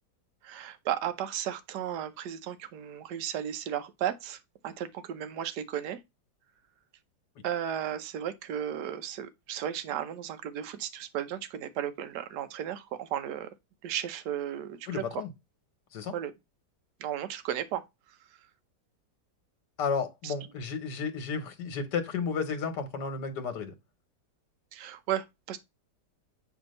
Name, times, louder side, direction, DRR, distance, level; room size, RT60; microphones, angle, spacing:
voice 1, 0.4-6.0 7.4-13.5 13.8-15.2 16.1-16.3 17.0-17.8 18.1-18.4 20.2-20.3 24.7-25.6, right 10 dB, 75° right, 1.3 m, -35 dB
voice 2, 14.9-15.3 15.9-16.1 19.8-23.7, left 5 dB, 75° left, 1.6 m, -32 dB
7.9 x 2.7 x 5.3 m
omnidirectional pair, 1.9 m